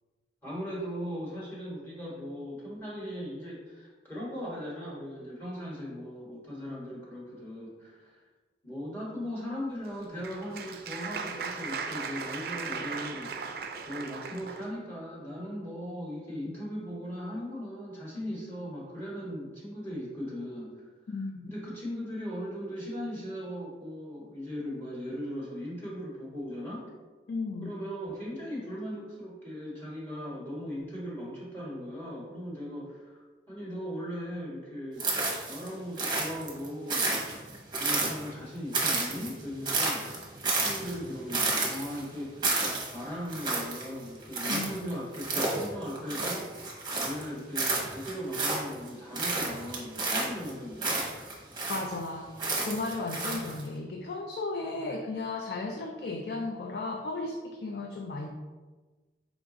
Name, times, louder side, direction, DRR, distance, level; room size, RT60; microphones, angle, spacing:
voice 1, 0.4-8.2 8.6-20.8 21.1-26.9 27.6-33.2 33.5-35.2 35.5-37.3 37.8-40.1 40.6-42.6 42.9-46.6 46.9-51.0, equal, 10° left, -7 dB, 1.3 m, -38 dB
Applause, 9.8-14.7, right 5 dB, 55° right, 0.4 m, -37 dB
voice 2, 21.1-21.6 27.3-27.7 44.5-44.9 51.7-52.3 52.6-58.3, left 3 dB, 65° left, 3 dB, 0.3 m, -35 dB
sound 1, 35.0-35.7 36.0-38.4 38.7-47.3 47.5-48.9 49.1-52.0 52.4-53.6, right 3 dB, 25° right, 0.8 m, -31 dB
4.8 x 2.5 x 3.8 m, 1.3 s
head